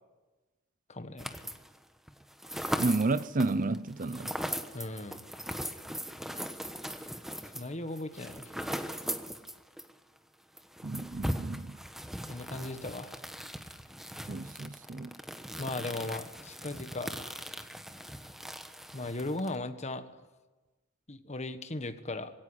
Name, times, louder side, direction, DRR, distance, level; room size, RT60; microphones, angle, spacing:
voice 1, 0.9-1.5 4.7-5.2 7.5-8.8 12.3-13.2 15.6-17.4 18.9-20.0 21.1-22.3, left 2 dB, 35° left, 1.4 m, -38 dB
sound 1, 1.2-1.8 2.1-9.9 10.2-10.3 10.6-19.6, equal, ahead, 1.2 m, -39 dB
voice 2, 2.8-4.4 10.8-11.8 14.3-15.2, right 3 dB, 40° right, 0.7 m, -31 dB
22.0 x 17.0 x 9.8 m
head